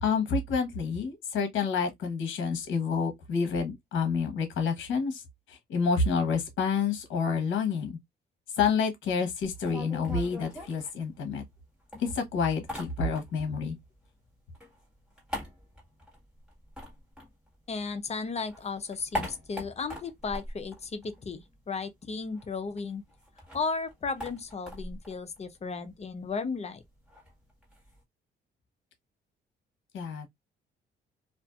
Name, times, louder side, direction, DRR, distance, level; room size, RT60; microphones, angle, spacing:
voice 1, 0.0-5.2 5.5-8.0 8.6-11.4 12.0-13.8 29.9-30.3, left 5 dB, 75° left, 0.9 m, -28 dB
sound 1, 9.4-11.6 11.9-13.5 13.8-18.0 18.3-21.6 21.9-22.0 22.2-28.0, left 1 dB, 5° right, 1.5 m, -42 dB
voice 2, 17.7-23.0 23.5-26.8, left 4 dB, 35° left, 0.6 m, -35 dB
2.5 x 2.4 x 2.3 m
cardioid pair, 90°, 20 cm